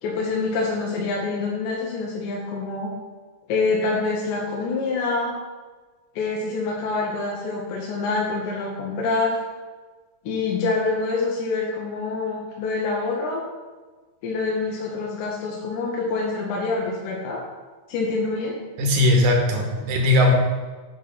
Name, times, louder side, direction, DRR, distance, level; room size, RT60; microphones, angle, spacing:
voice 1, 0.0-2.9 3.5-5.4 6.2-9.4 10.3-13.4 14.2-17.4 17.9-18.6, left 3 dB, 80° left, -2 dB, 2.3 m, -26 dB
voice 2, 18.8-20.3, left 2 dB, 75° right, 0 dB, 2.5 m, -18 dB
8.4 x 3.0 x 5.8 m, 1.3 s
omnidirectional pair, 3.5 m